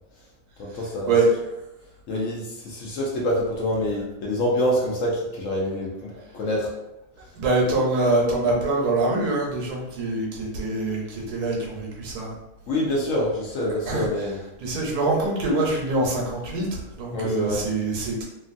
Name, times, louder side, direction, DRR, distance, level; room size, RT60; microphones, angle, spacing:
voice 1, 0.6-1.1 2.1-6.7 12.7-14.4 17.1-17.6, left 1 dB, 65° left, -3 dB, 0.9 m, -26 dB
voice 2, 7.4-12.4 13.8-14.1 14.6-18.2, right 2 dB, 80° right, -2 dB, 1.3 m, -24 dB
2.9 x 2.5 x 2.5 m, 0.92 s
omnidirectional pair, 1.7 m